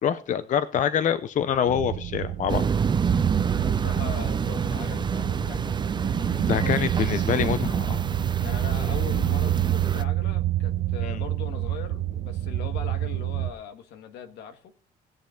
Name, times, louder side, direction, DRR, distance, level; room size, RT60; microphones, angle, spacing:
voice 1, 0.0-2.7 6.5-8.0 11.0-11.2, left 9 dB, 50° left, 14 dB, 0.7 m, -25 dB
sound 1, 1.7-13.5, right 14 dB, 75° right, 1.0 m, -29 dB
sound 2, 2.5-10.0, right 6 dB, 25° right, 0.6 m, -27 dB
voice 2, 3.6-6.8 8.4-14.7, left 8 dB, 80° left, 8 dB, 1.8 m, -40 dB
18.5 x 7.0 x 3.8 m, 0.39 s
cardioid pair, 110°, 17 cm